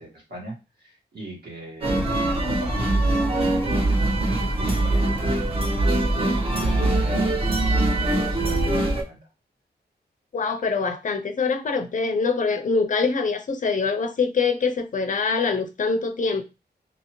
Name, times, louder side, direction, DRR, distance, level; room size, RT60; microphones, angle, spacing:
voice 1, 0.0-3.8 4.1-5.3 6.1-9.2, right 1 dB, 65° right, 1.5 m, -41 dB
sound 1, 1.8-9.0, right 2 dB, 30° right, 0.7 m, -22 dB
voice 2, 10.3-16.4, left 4 dB, 50° left, 0.4 m, -24 dB
2.7 x 2.7 x 2.9 m
wide cardioid pair, 145°, 18 cm